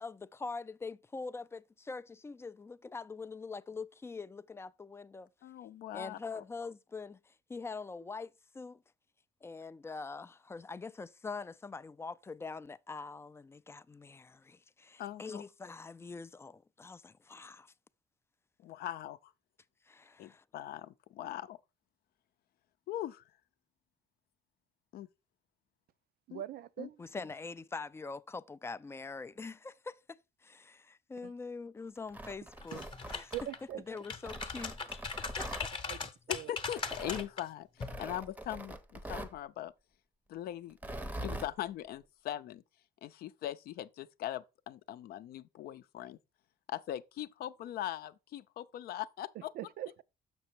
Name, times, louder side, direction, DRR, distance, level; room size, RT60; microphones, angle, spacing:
voice 1, 0.0-5.3 5.9-8.8 9.4-17.7 19.9-20.4 27.0-32.8 33.1-33.3 33.9-35.0 35.4-35.7, left 4 dB, 15° left, 0.3 m, -44 dB
voice 2, 5.4-6.4 15.0-15.4 18.6-19.2 20.2-21.6 22.9-23.2 24.9-25.1 26.3-26.4 26.8-26.9 36.3-39.7 40.3-42.6 43.0-46.2 46.7-49.5, left 12 dB, 65° left, 0.5 m, -41 dB
voice 3, 26.3-27.0 31.2-31.3 32.7-32.8 33.3-33.8 35.8-36.0 36.3-36.5 49.3-50.0, right 13 dB, 65° right, 0.5 m, -42 dB
Tearing, 32.0-33.7 34.2-35.7 36.8-37.3 37.8-39.4 40.7-41.5, right 1 dB, 10° right, 0.7 m, -43 dB
sound 1, 32.6-33.6 34.0-37.4 37.8-38.0, left 4 dB, 30° left, 0.9 m, -39 dB
6.6 x 6.1 x 4.4 m
cardioid pair, 110°, 17 cm